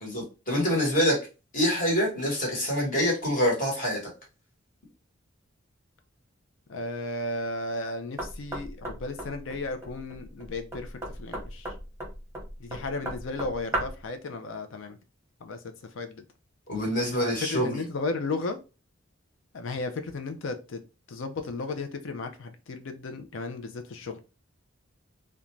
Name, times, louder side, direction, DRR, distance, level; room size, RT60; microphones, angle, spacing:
voice 1, 0.0-1.2 1.5-4.0 16.7-17.8, equal, 40° left, 1.2 m, -26 dB
voice 2, 6.7-11.7 12.6-15.0 15.4-16.2 17.2-18.6 19.5-20.8 21.1-24.2, left 3 dB, 70° left, 0.5 m, -34 dB
Knock, 8.2-14.1, right 1 dB, 10° right, 0.7 m, -36 dB
2.5 x 2.2 x 3.1 m
head